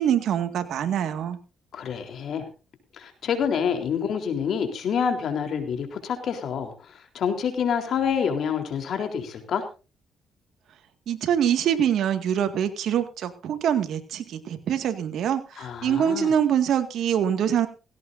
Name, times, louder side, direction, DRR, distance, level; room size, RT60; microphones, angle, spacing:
voice 1, 0.0-1.4 11.1-17.7, right 9 dB, 70° right, 8 dB, 2.0 m, -24 dB
voice 2, 1.7-2.4 3.0-9.6 15.6-16.3, left 7 dB, 65° left, 6 dB, 3.7 m, -27 dB
17.5 x 16.5 x 2.7 m, 0.32 s
cardioid pair, 90°, 0 cm